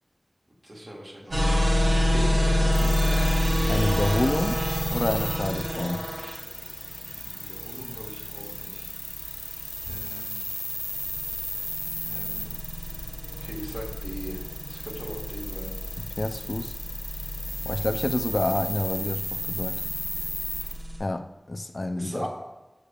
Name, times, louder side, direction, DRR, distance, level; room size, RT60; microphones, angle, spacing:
voice 1, 0.6-3.6 7.1-8.9 9.9-10.3 12.1-12.5 13.4-14.4 14.7-15.8 22.0-22.3, equal, 50° right, -4 dB, 2.2 m, -39 dB
sound 1, 1.3-21.0, left 1 dB, 80° right, 2.5 m, -28 dB
sound 2, 2.7-20.8, left 1 dB, 30° left, 0.8 m, -36 dB
voice 2, 3.7-4.6 4.9-6.0 16.0-16.7 17.6-19.8 21.0-22.3, left 2 dB, 60° left, 7 dB, 0.4 m, -28 dB
8.3 x 6.7 x 2.4 m, 1.1 s
wide cardioid pair, 55°, 0 cm